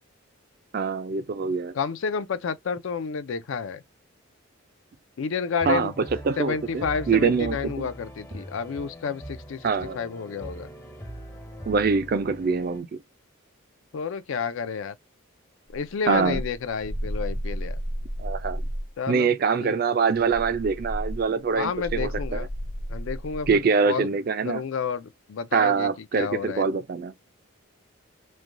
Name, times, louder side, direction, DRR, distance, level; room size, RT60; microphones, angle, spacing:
voice 1, 0.7-1.7 5.6-5.9 6.2-7.9 9.6-10.0 11.7-13.0 16.1-16.4 18.2-18.6 19.1-22.5 23.5-24.6 25.5-27.1, right 5 dB, 45° right, 0.3 m, -24 dB
voice 2, 1.7-3.8 5.2-5.9 6.4-9.7 9.9-10.7 13.9-15.0 15.7-17.8 19.0-19.3 19.6-19.7 21.6-22.5 22.9-24.1 24.4-25.9 26.1-26.7, left 6 dB, 70° left, 0.4 m, -30 dB
sound 1, 5.6-12.8, equal, 15° left, 0.5 m, -41 dB
sound 2, 15.7-18.9 20.1-23.6, equal, 45° left, 0.9 m, -33 dB
3.2 x 2.2 x 2.5 m
head